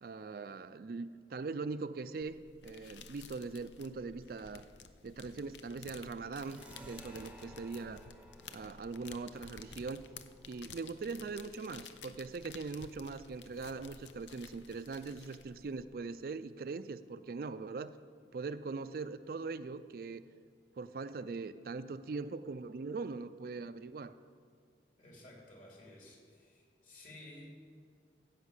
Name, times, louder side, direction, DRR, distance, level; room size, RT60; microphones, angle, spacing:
voice 1, 0.0-4.7 5.0-8.0 8.5-10.0 10.5-17.9 18.3-20.2 20.8-24.1, right 4 dB, 55° right, 12 dB, 0.4 m, -41 dB
sound 1, 2.2-15.8, left 6 dB, 85° left, 0.7 m, -53 dB
sound 2, 6.4-13.6, right 1 dB, 5° right, 0.7 m, -59 dB
voice 2, 25.0-27.5, left 1 dB, 45° left, -2 dB, 3.0 m, -54 dB
15.0 x 5.8 x 8.2 m, 2.2 s
head